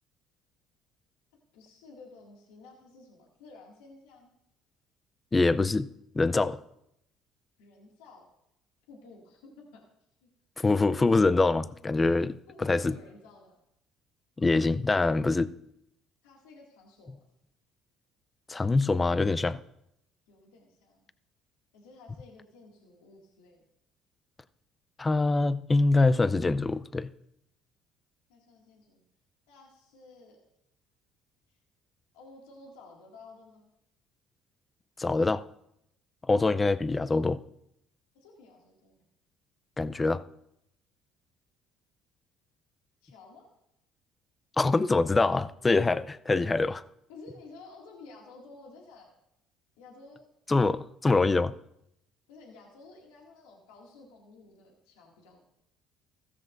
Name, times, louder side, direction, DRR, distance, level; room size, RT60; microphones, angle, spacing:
voice 1, 1.5-4.3 6.4-6.6 7.6-8.3 8.9-9.8 10.2-10.3 12.5-13.6 16.2-17.2 20.3-21.0 21.7-23.6 28.3-29.0 29.5-30.4 32.1-33.7 38.1-39.0 43.0-43.5 47.1-49.1 49.8-50.2 52.3-55.5, left 3 dB, 85° left, 2.2 m, -52 dB
voice 2, 5.3-5.9 6.1-6.6 10.6-13.0 14.4-15.5 18.5-19.6 25.0-27.1 35.0-35.4 36.3-37.4 39.8-40.2 44.6-46.8 50.5-51.5, left 3 dB, 20° left, 0.5 m, -24 dB
15.0 x 13.5 x 2.6 m
supercardioid pair, 75°, 0 cm